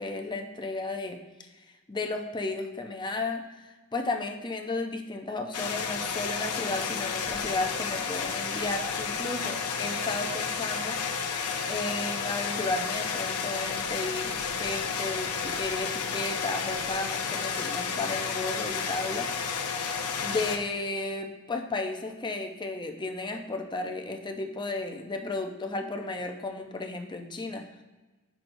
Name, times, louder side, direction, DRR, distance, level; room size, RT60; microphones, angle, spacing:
voice 1, 0.0-1.5 1.9-11.0 11.7-14.3 14.6-19.3 20.2-27.6, left 2 dB, 20° left, 4 dB, 0.6 m, -33 dB
sound 1, 5.5-20.6, left 6 dB, 85° left, 0.7 m, -31 dB
9.3 x 6.1 x 2.6 m, 1.2 s
head